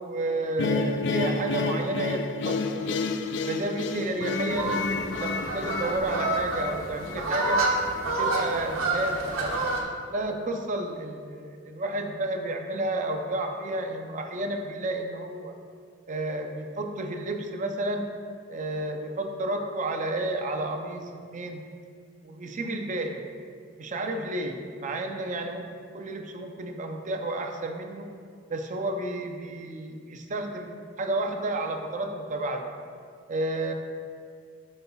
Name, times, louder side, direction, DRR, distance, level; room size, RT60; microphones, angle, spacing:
voice 1, 0.0-3.0 3.5-7.6 8.1-9.6 10.1-15.6 16.1-18.1 18.5-21.6 22.2-23.2 23.8-28.1 28.5-32.7 33.3-33.7, right 2 dB, 40° right, 4 dB, 0.5 m, -31 dB
sound 1, 0.6-7.7, left 4 dB, 60° left, 0.4 m, -30 dB
sound 2, 4.5-9.8, right 2 dB, 85° right, 1.2 m, -28 dB
12.0 x 5.4 x 2.3 m, 2.2 s
head